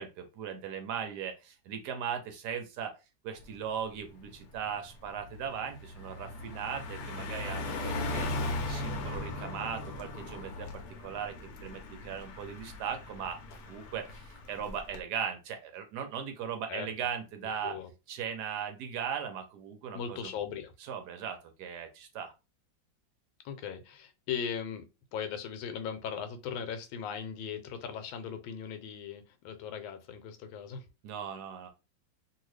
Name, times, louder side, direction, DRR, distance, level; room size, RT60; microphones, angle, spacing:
voice 1, 0.0-3.0 3.2-8.3 8.7-11.4 11.6-13.4 13.7-17.8 18.1-20.3 20.8-22.3 31.0-31.7, right 7 dB, 70° right, 1.0 m, -38 dB
Car passing by, 3.4-3.7 4.0-15.0, left 2 dB, 65° left, 1.0 m, -38 dB
voice 2, 8.4-8.7 16.7-16.9 17.6-17.9 19.9-20.7 23.4-30.8, left 7 dB, 85° left, 1.4 m, -38 dB
2.8 x 2.7 x 3.1 m
omnidirectional pair, 2.1 m